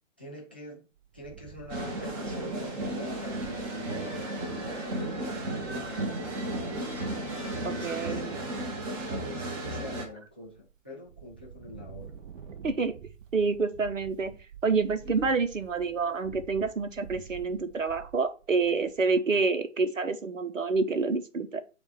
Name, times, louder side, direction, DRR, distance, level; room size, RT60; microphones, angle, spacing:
voice 1, 0.2-0.8 1.1-6.9 7.5-8.2 8.9-12.1 15.0-15.1, left 1 dB, 10° left, 0.3 m, -45 dB
Wind, 1.0-4.1 4.6-4.7 4.9-5.3 6.7-7.3 7.8-8.3 8.7-9.8 10.3-10.8 11.1-19.3, right 9 dB, 45° right, 1.2 m, -49 dB
sound 1, 1.7-10.1, right 1 dB, 25° right, 1.3 m, -34 dB
voice 2, 7.6-8.4 12.6-13.0 13.3-21.6, right 4 dB, 80° right, 1.0 m, -28 dB
7.1 x 2.6 x 5.3 m
figure-of-eight pair, 125°, 39 cm